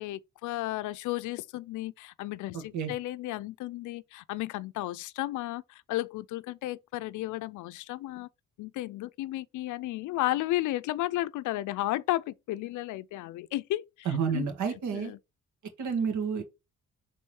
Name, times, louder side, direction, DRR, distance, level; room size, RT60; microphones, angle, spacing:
voice 1, 0.0-8.3 8.6-14.5 14.7-15.2, left 16 dB, 75° left, 0.5 m, -33 dB
voice 2, 2.5-2.9 14.1-15.1 15.8-16.4, right 6 dB, 70° right, 1.9 m, -30 dB
6.2 x 3.7 x 4.4 m
cardioid pair, 90°, 30 cm